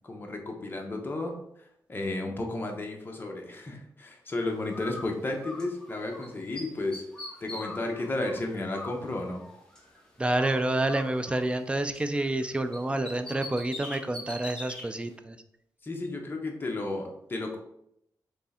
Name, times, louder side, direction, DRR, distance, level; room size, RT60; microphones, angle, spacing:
voice 1, 0.0-1.4 1.9-7.0 7.4-9.4 12.9-13.0 15.8-17.6, left 2 dB, 30° left, 2 dB, 0.9 m, -33 dB
Bird, 4.7-6.3 6.5-10.0 10.3-12.4 12.7-14.8, left 1 dB, 10° left, 1.4 m, -43 dB
voice 2, 10.2-15.4, right 1 dB, 15° right, 9 dB, 0.4 m, -28 dB
3.5 x 3.2 x 4.2 m, 0.75 s
cardioid pair, 95°, 7 cm